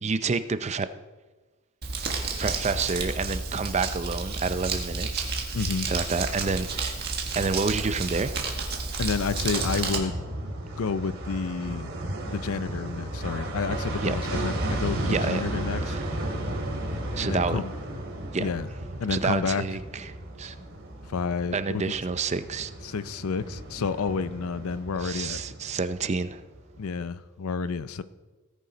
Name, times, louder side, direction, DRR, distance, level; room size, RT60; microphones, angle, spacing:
voice 1, 0.0-0.9 2.4-5.3 5.9-7.0 7.4-8.3 14.0-14.2 15.0-15.4 15.9-16.0 17.1-17.6 18.3-18.5 19.1-20.6 21.5-22.7 25.0-26.4, right 4 dB, 30° right, 12 dB, 0.5 m, -29 dB
Crumpling crinkling, 1.8-10.0, right 4 dB, 50° right, 1.7 m, -31 dB
voice 2, 5.5-5.9 9.0-10.2 10.8-11.9 12.3-15.9 17.2-17.7 18.4-18.7 19.0-19.6 21.1-21.9 22.8-25.4 26.8-28.0, left 5 dB, 85° left, 14 dB, 0.5 m, -30 dB
sound 1, 9.3-26.8 27.1-27.2, right 1 dB, 65° right, 2.6 m, -34 dB
17.5 x 6.8 x 5.1 m, 1.3 s
head